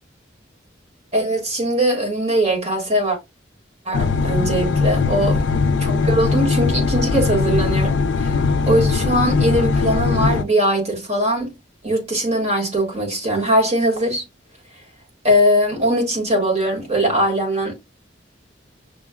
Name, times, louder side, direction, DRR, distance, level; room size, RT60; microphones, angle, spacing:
voice 1, 1.1-3.2 3.8-5.4 5.8-11.5 11.8-14.2 15.2-17.7, equal, 35° right, 1.5 m, -20 dB
sound 1, 3.9-10.4, left 4 dB, 75° left, 0.4 m, -20 dB
6.2 x 2.2 x 2.2 m
head